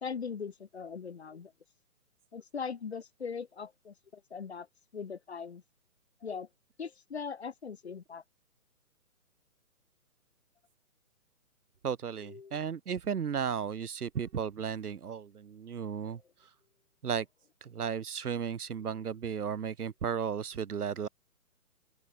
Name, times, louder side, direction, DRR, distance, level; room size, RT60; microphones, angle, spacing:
voice 1, 0.0-1.5 2.3-4.7 4.9-5.6 6.2-6.5 6.8-8.2 12.2-12.6, left 6 dB, 45° left, 0.6 m, -40 dB
voice 2, 11.8-16.2 17.0-17.3 17.6-21.1, right 7 dB, 80° right, 1.5 m, -34 dB
open air
hypercardioid pair, 175°, 44 cm